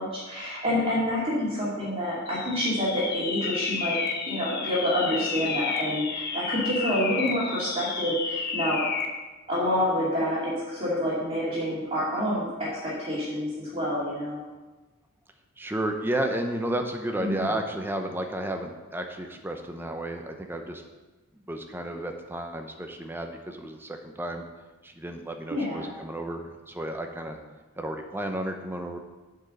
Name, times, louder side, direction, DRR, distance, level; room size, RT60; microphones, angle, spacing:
voice 1, 0.0-4.0 4.3-8.9 9.5-14.4 17.2-17.6 25.5-25.9, equal, 25° right, -8 dB, 2.3 m, -28 dB
sound 1, 2.3-9.2, left 5 dB, 50° left, 0.8 m, -31 dB
voice 2, 15.6-20.8 21.3-24.4 24.8-27.4 27.8-29.0, right 1 dB, 10° right, 4 dB, 0.7 m, -32 dB
7.8 x 4.8 x 6.3 m, 1.2 s
head